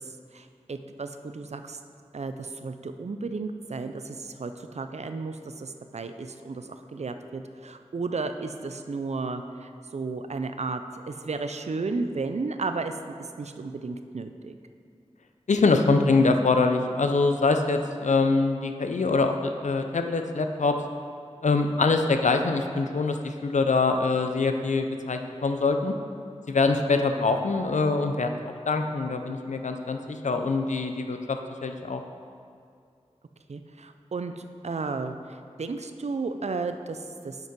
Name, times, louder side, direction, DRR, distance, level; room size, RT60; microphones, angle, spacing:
voice 1, 0.0-1.8 2.1-14.6 33.5-37.4, right 3 dB, 65° right, 8 dB, 0.5 m, -33 dB
voice 2, 15.5-20.8 21.4-25.9 26.5-32.0, left 3 dB, 80° left, 6 dB, 0.5 m, -24 dB
7.6 x 5.4 x 5.3 m, 2.3 s
wide cardioid pair, 60°, 12 cm